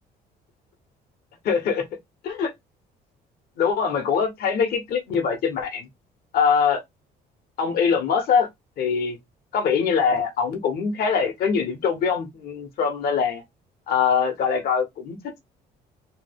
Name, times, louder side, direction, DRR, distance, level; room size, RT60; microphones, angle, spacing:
voice 1, 1.4-1.8 2.2-2.5 3.6-5.9 6.3-6.8 7.6-8.5 8.8-9.2 9.5-13.4 13.9-15.4, left 6 dB, 65° left, 1.1 m, -23 dB
3.1 x 2.1 x 3.4 m
cardioid pair, 110°, 17 cm